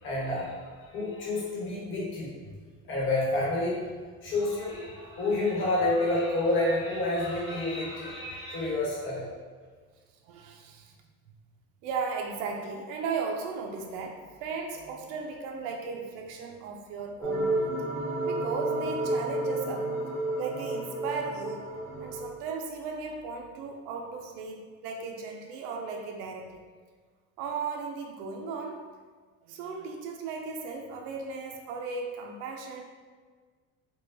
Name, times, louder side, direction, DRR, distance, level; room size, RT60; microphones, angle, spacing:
voice 1, 0.0-2.3 2.8-3.8 4.2-9.3, left 2 dB, 40° left, -5 dB, 1.2 m, -29 dB
voice 2, 10.2-11.0 11.8-17.9 18.2-19.9 20.4-21.7 22.0-26.6 27.4-28.9 29.4-32.8, right 4 dB, 85° right, 2 dB, 0.5 m, -36 dB
sound 1, 17.2-22.2, right 2 dB, 10° left, 0.6 m, -31 dB
4.5 x 2.2 x 2.6 m, 1.5 s
cardioid pair, 150°, 31 cm